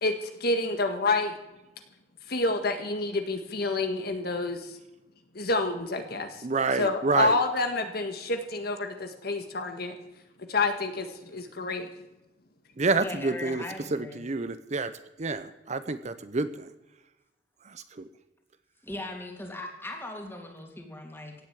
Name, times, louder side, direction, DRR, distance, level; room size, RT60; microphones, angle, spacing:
voice 1, 0.0-1.4 2.3-4.8 5.3-6.4 6.7-9.9 10.5-11.9, left 2 dB, 60° left, 6 dB, 1.8 m, -28 dB
voice 2, 6.4-7.3 12.8-13.6 13.9-14.9 15.2-16.7, right 3 dB, 40° right, 12 dB, 0.7 m, -28 dB
voice 3, 13.0-14.2 18.8-21.3, left 2 dB, 15° left, 2 dB, 3.0 m, -39 dB
16.5 x 8.0 x 9.0 m, 0.97 s
head